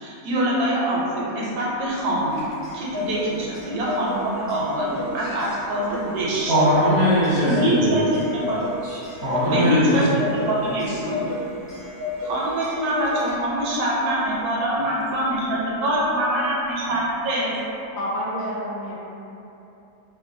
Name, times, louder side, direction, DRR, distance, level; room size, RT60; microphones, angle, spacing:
voice 1, 0.0-2.4 2.7-6.5 7.4-8.6 9.4-11.3 12.2-17.5, equal, 80° right, -5 dB, 1.1 m, -24 dB
Clock, 2.1-13.7, left 2 dB, 15° left, 0.6 m, -33 dB
voice 2, 6.5-7.9 8.8-10.0 10.9-11.0, equal, 60° right, -12 dB, 0.7 m, -21 dB
voice 3, 17.9-19.0, equal, 70° left, -7 dB, 0.9 m, -28 dB
2.9 x 2.2 x 2.5 m, 2.9 s
omnidirectional pair, 1.7 m